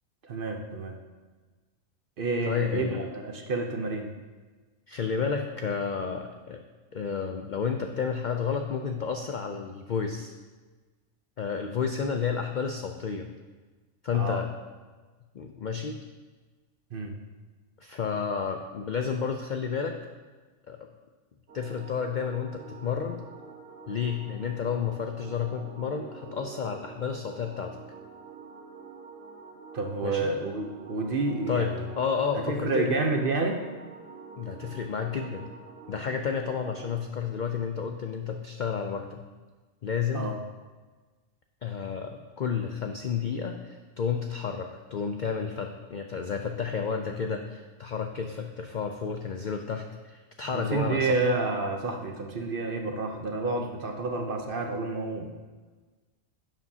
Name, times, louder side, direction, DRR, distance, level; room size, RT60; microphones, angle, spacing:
voice 1, 0.2-1.0 2.2-4.1 14.1-14.4 16.9-17.1 29.7-31.7 32.3-33.6 40.1-40.3 50.5-55.3, right 3 dB, 50° right, 3 dB, 0.8 m, -29 dB
voice 2, 2.5-3.1 4.9-6.6 6.9-10.3 11.4-13.3 14.0-14.5 15.3-16.0 17.8-20.0 20.7-20.8 21.5-23.2 23.9-27.8 30.0-30.3 31.5-32.9 34.4-35.5 35.9-39.2 39.8-40.3 41.6-51.2, left 6 dB, 65° left, 5 dB, 0.4 m, -31 dB
sound 1, 21.5-37.0, right 5 dB, 85° right, 1.6 m, -47 dB
11.0 x 7.3 x 2.8 m, 1.3 s
omnidirectional pair, 1.4 m